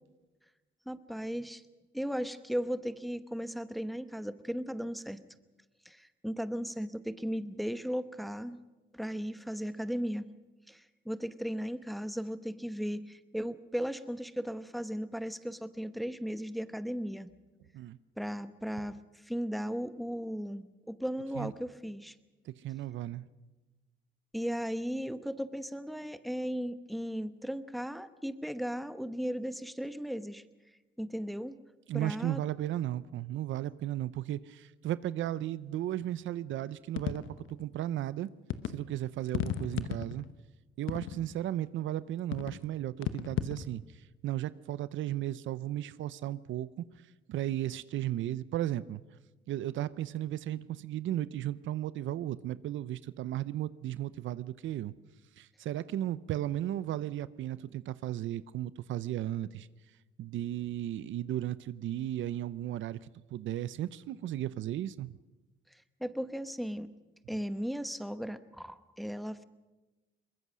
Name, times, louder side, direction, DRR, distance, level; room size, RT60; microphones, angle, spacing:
voice 1, 0.9-1.6 1.9-5.2 5.8-8.6 8.9-10.3 10.7-17.3 18.2-22.1 24.3-30.4 31.0-31.6 31.9-32.4 65.7-66.9 67.3-69.4, equal, ahead, 1.0 m, -36 dB
voice 2, 22.5-23.2 31.9-38.3 38.7-40.3 40.8-43.8 44.2-46.8 47.3-49.0 49.5-54.9 55.4-59.7 60.2-65.1, right 13 dB, 75° right, 0.7 m, -35 dB
sound 1, 37.0-37.5 38.5-38.8 39.3-40.3 40.9-41.4 42.3-42.6 43.0-43.7, left 10 dB, 80° left, 1.0 m, -35 dB
22.5 x 20.5 x 6.2 m
cardioid pair, 90°, 20 cm